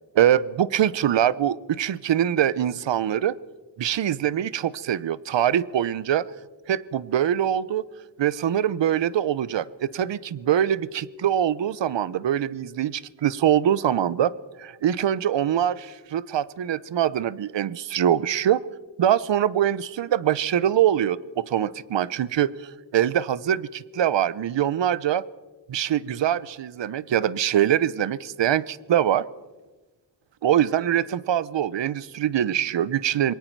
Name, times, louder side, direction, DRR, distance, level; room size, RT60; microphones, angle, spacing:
voice 1, 0.1-3.3 3.8-6.3 6.7-7.8 8.2-18.6 19.0-25.2 25.7-29.3 30.4-33.3, right 10 dB, 80° right, 19 dB, 0.7 m, -23 dB
26.5 x 23.0 x 4.6 m, 1.2 s
wide cardioid pair, 140°, 43 cm